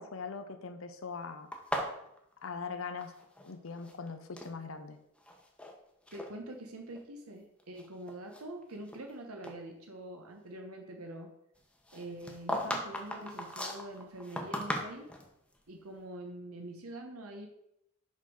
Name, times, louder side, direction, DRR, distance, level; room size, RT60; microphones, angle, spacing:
voice 1, 0.0-1.5 2.4-3.1 3.4-5.0, left 5 dB, 65° left, 8 dB, 0.7 m, -41 dB
sound 1, 1.5-3.5 3.8-4.5 5.2-5.7 6.1-6.3 6.9-7.0 7.6-9.1 9.4-9.6 11.9-15.3, left 1 dB, 5° left, 1.0 m, -38 dB
voice 2, 6.1-11.3 11.9-15.1 15.7-17.5, right 1 dB, 85° right, 3 dB, 1.2 m, -45 dB
6.3 x 5.4 x 6.3 m, 0.78 s
head